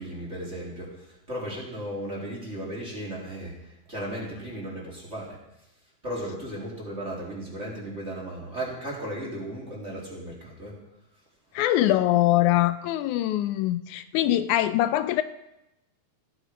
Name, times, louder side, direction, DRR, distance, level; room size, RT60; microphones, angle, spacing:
voice 1, 0.0-3.5 3.9-5.4 6.0-10.7, right 1 dB, 25° right, -4 dB, 3.3 m, -35 dB
voice 2, 11.5-15.2, left 14 dB, 85° left, 12 dB, 2.0 m, -23 dB
15.0 x 9.5 x 5.1 m, 0.91 s
omnidirectional pair, 3.4 m